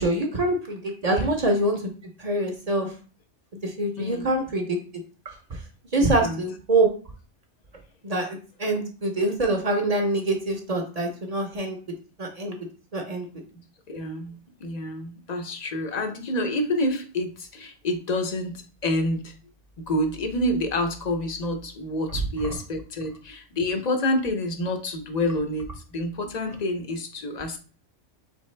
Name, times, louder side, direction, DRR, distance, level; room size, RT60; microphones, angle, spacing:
voice 1, 0.0-1.8 2.2-2.9 3.6-4.8 5.9-6.9 8.0-11.8 12.2-12.6 12.9-13.3, right 2 dB, 40° right, 2 dB, 0.7 m, -25 dB
voice 2, 4.0-4.3 6.0-6.4 13.5-19.3 19.8-27.6, left 1 dB, 45° left, 6 dB, 0.6 m, -28 dB
4.0 x 3.4 x 3.2 m, 0.37 s
omnidirectional pair, 1.2 m